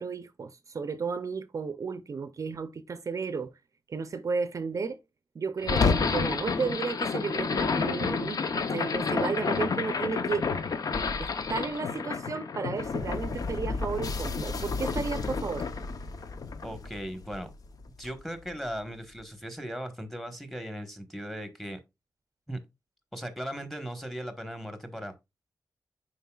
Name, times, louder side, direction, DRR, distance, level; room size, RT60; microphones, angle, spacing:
voice 1, 0.0-3.5 3.9-5.0 5.3-10.5 11.2-15.7, right 5 dB, 50° right, 0.5 m, -33 dB
sound 1, 5.6-17.8, left 4 dB, 60° left, 0.7 m, -30 dB
voice 2, 16.6-17.5 18.0-21.8 22.5-22.6 23.1-25.1, equal, 5° left, 1.2 m, -38 dB
9.3 x 4.5 x 2.3 m
wide cardioid pair, 155°, 7 cm